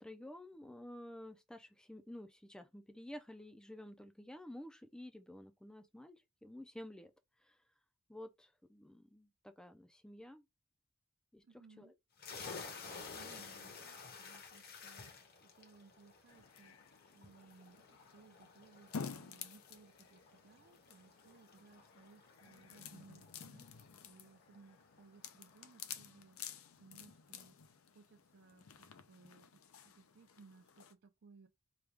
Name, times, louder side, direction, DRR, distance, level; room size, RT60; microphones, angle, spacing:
voice 1, 0.0-7.1 7.4-7.6 8.1-10.4 11.3-11.4 11.8-11.9, left 1 dB, 5° left, 0.4 m, -51 dB
voice 2, 11.4-11.9 13.1-27.6 27.9-31.5, right 4 dB, 55° right, 0.5 m, -63 dB
sound 1, 12.2-25.5, left 4 dB, 50° left, 0.9 m, -53 dB
sound 2, 16.3-30.9, left 6 dB, 80° left, 0.6 m, -52 dB
4.8 x 2.3 x 3.4 m
head